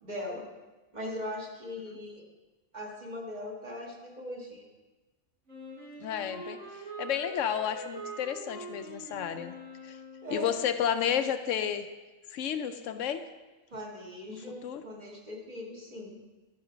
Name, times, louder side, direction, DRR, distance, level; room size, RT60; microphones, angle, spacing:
voice 1, 0.0-0.4 0.9-2.1 2.7-4.7 10.2-10.5 13.7-16.2, left 1 dB, 35° right, -2 dB, 1.8 m, -39 dB
Wind instrument woodwind instrument, 5.5-10.6, right 1 dB, 75° right, 4.4 m, -44 dB
voice 2, 6.0-6.6 7.0-9.6 9.8-10.0 10.3-11.8 12.3-13.2 14.3-14.8, left 9 dB, 85° left, 9 dB, 1.0 m, -31 dB
12.0 x 5.9 x 5.0 m, 1.2 s
omnidirectional pair, 1.3 m